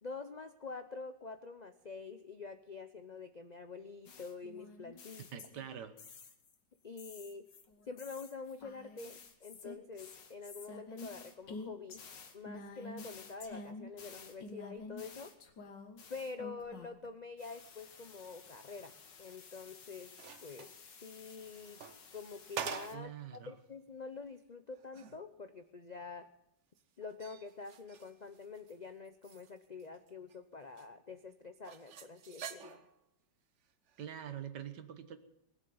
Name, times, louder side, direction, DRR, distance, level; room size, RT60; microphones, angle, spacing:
voice 1, 0.0-5.3 6.8-7.5 7.9-12.0 12.3-15.3 16.1-18.9 19.2-20.1 20.4-20.7 21.0-21.8 22.1-26.3 27.0-32.8, left 4 dB, 65° left, 8 dB, 0.4 m, -47 dB
sound 1, 4.1-6.5 7.0-17.1 17.4-22.9, left 3 dB, 80° left, 2.1 m, -51 dB
voice 2, 5.3-5.9 22.9-23.5 34.0-35.2, right 9 dB, 75° right, 10 dB, 1.7 m, -45 dB
sound 2, 19.6-20.8 21.5-23.2 23.6-23.7 24.2-24.3 24.7-25.2 26.8-28.8 29.1-30.4 30.8-30.9 31.6-33.0 33.9-34.1, right 7 dB, 50° right, 1.0 m, -47 dB
20.0 x 7.3 x 8.7 m, 0.84 s
omnidirectional pair, 1.9 m